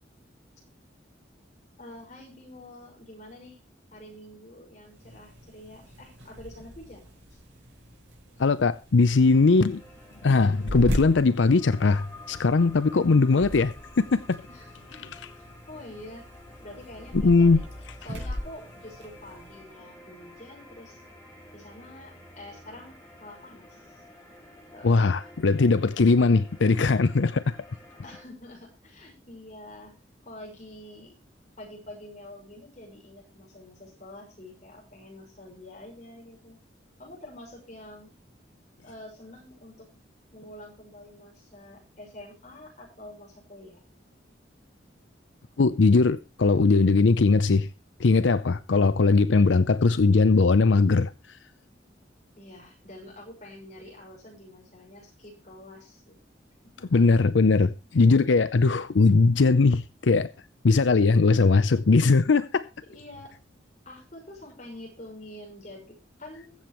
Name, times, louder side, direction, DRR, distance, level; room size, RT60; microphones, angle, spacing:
voice 1, 1.8-3.6 3.9-7.4 14.5-14.6 14.9-15.1 15.3-16.3 16.6-17.6 18.0-21.0 21.5-24.0 24.7-25.0 28.0-29.9 30.2-31.2 31.6-36.6 37.0-38.1 38.8-39.9 40.3-43.8 52.4-56.2 56.8-57.0 62.8-63.3 63.8-66.5, left 1 dB, 40° left, 6.2 m, -46 dB
sound 1, 4.9-19.7, equal, 75° right, 4.8 m, -39 dB
voice 2, 8.4-9.8 10.2-14.4 17.2-17.6 24.8-27.6 45.6-47.7 48.0-51.4 56.9-60.3 60.6-62.7, left 3 dB, 80° left, 0.6 m, -20 dB
sound 2, 9.2-28.2, left 1 dB, 15° left, 4.6 m, -50 dB
22.0 x 7.7 x 3.1 m
head